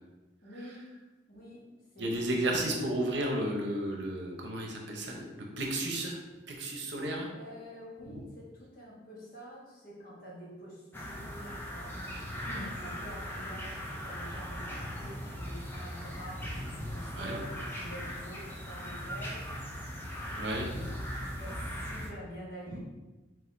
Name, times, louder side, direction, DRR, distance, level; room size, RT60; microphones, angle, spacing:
voice 1, 0.4-0.9 1.3-1.7 1.9-2.6 7.2-16.5 16.9-19.5 20.3-20.5 20.9-22.8, equal, 50° left, -5 dB, 1.3 m, -47 dB
voice 2, 2.0-5.2 5.6-6.2 6.5-7.3 17.1-17.4 20.4-20.9 22.7-22.8, right 1 dB, 65° right, 0 dB, 0.8 m, -33 dB
sound 1, 10.9-22.1, equal, 10° left, 0.5 m, -39 dB
4.8 x 3.8 x 2.7 m, 1.1 s
head